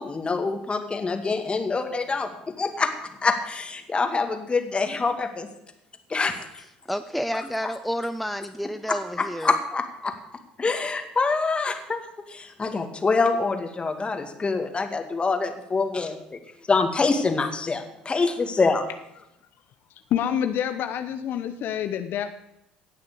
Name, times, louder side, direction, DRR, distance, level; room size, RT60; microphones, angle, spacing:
voice 1, 0.0-2.9 3.2-5.5 6.1-6.5 7.3-7.4 9.2-10.1 10.6-12.0 12.3-16.1 16.7-18.8, left 4 dB, 25° left, 6 dB, 2.1 m, -25 dB
voice 2, 6.9-9.5, equal, ahead, 11 dB, 0.6 m, -30 dB
voice 3, 20.1-22.3, left 9 dB, 55° left, 8 dB, 0.9 m, -27 dB
17.5 x 6.5 x 6.9 m, 0.84 s
hypercardioid pair, 65°, 4 cm